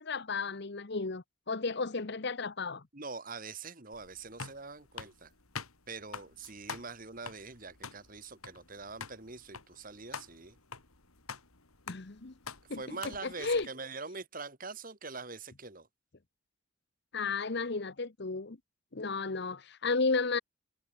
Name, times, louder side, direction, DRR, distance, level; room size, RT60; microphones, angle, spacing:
voice 1, 0.0-2.8 11.9-12.3 12.7-13.7 17.1-18.6 18.9-20.4, left 4 dB, 50° left, 0.9 m, -33 dB
voice 2, 2.9-5.3 5.9-10.6 12.7-15.9, right 4 dB, 40° right, 2.2 m, -44 dB
sound 1, 3.9-13.6, left 5 dB, 85° left, 4.1 m, -46 dB
head